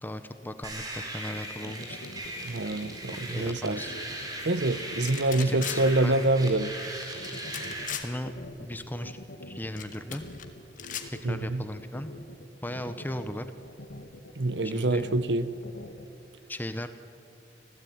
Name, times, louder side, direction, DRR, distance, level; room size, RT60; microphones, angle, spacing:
voice 1, 0.0-2.0 3.1-3.9 5.4-6.3 8.0-8.3 8.6-9.2 9.5-10.3 11.1-12.1 12.6-13.5 14.6-15.1 16.5-16.9, left 1 dB, 10° left, 9 dB, 0.9 m, -37 dB
sound 1, 0.6-8.0, right 1 dB, 20° right, 4.3 m, -39 dB
sound 2, 1.3-16.0, left 1 dB, 85° left, 1.9 m, -45 dB
voice 2, 2.4-3.8 4.4-6.7 11.2-11.6 14.4-15.5, right 2 dB, 75° right, 14 dB, 1.0 m, -26 dB
sound 3, 5.0-5.8 7.2-8.1 9.8-10.4 10.8-11.1, left 9 dB, 50° left, 1.8 m, -37 dB
26.0 x 16.0 x 9.4 m, 2.5 s
head